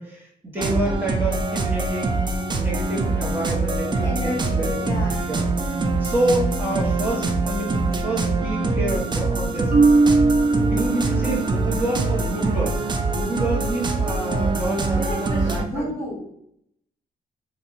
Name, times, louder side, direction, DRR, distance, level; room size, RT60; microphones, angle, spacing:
voice 1, 0.0-2.2 2.5-5.0 5.3-5.4 6.0-9.7 10.6-15.9, right 1 dB, 10° right, -5 dB, 1.1 m, -28 dB
sound 1, 0.6-15.6, right 3 dB, 30° right, 0.4 m, -24 dB
voice 2, 4.0-5.3 14.9-16.3, left 1 dB, 25° left, -7 dB, 1.4 m, -32 dB
Marimba xylophone, 9.7-11.7, right 3 dB, 60° right, 0.6 m, -19 dB
3.0 x 2.6 x 2.6 m, 0.71 s
cardioid pair, 70°, 17 cm